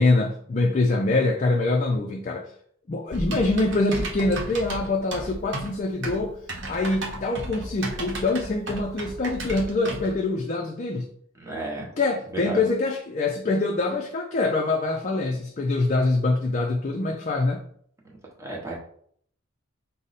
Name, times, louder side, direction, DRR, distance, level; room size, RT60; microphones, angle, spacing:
voice 1, 0.0-2.5 2.9-6.3 6.7-11.1 12.0-17.6, left 2 dB, 35° left, 2 dB, 0.3 m, -24 dB
Typing, 3.1-10.1, right 1 dB, 60° right, 0.8 m, -34 dB
voice 2, 11.4-11.9 12.3-12.6 18.4-18.7, right 2 dB, 15° right, -2 dB, 0.9 m, -33 dB
5.1 x 2.0 x 4.0 m, 0.63 s
head